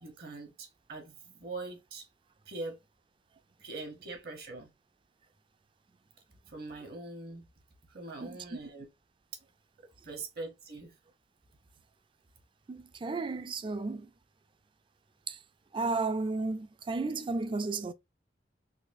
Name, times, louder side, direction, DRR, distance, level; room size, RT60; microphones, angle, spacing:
voice 1, 0.0-2.1 2.5-2.8 3.6-4.7 6.5-7.4 7.9-8.9 10.0-10.9, right 3 dB, 55° right, 1.0 m, -42 dB
voice 2, 12.7-14.1 15.3-15.4 15.7-17.9, right 3 dB, 25° right, 0.3 m, -33 dB
4.1 x 2.9 x 2.6 m
head